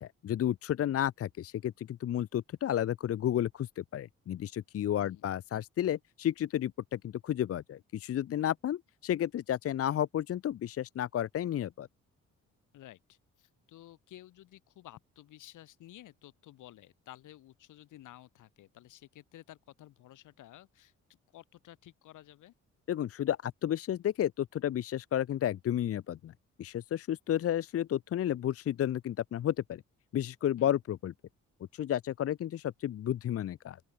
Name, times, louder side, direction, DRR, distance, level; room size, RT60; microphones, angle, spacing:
voice 1, 0.0-11.9 22.9-26.3 26.6-29.8 30.1-31.1 31.7-33.8, left 11 dB, 50° left, 0.6 m, -32 dB
voice 2, 12.7-20.9 21.3-22.5 30.6-30.7, left 14 dB, 85° left, 5.6 m, -53 dB
open air
cardioid pair, 90°, 30 cm